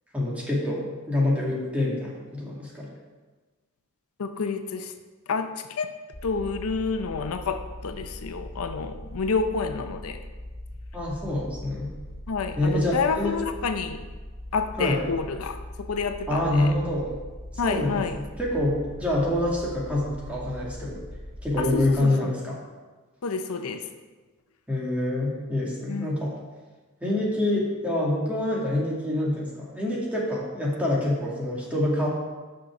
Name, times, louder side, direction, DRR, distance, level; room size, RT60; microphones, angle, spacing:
voice 1, 0.1-2.9 10.9-11.9 12.6-13.3 14.8-15.0 16.3-17.1 17.6-21.0 21.4-22.6 24.7-26.3 27.0-32.1, left 1 dB, 5° right, -5 dB, 1.9 m, -26 dB
voice 2, 4.2-4.9 5.3-5.9 6.2-10.2 12.3-14.0 14.5-16.7 17.6-18.2 21.6-22.3 23.2-23.9 25.9-26.1, left 4 dB, 80° left, 7 dB, 0.6 m, -29 dB
sound 1, 6.1-22.0, left 1 dB, 15° left, 0.5 m, -40 dB
6.4 x 5.7 x 5.8 m, 1.3 s
head